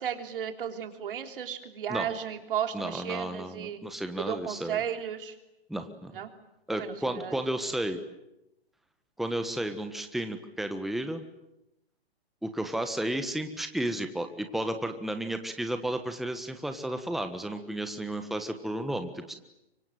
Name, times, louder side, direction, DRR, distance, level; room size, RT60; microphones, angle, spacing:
voice 1, 0.0-3.8 4.2-5.4 6.1-6.3 6.7-7.4, right 9 dB, 55° right, 6 dB, 3.6 m, -34 dB
voice 2, 2.7-4.8 5.7-6.1 6.7-8.0 9.2-11.3 12.4-19.4, right 1 dB, ahead, 7 dB, 1.4 m, -33 dB
25.0 x 25.0 x 9.1 m, 0.88 s
hypercardioid pair, 130°, 31 cm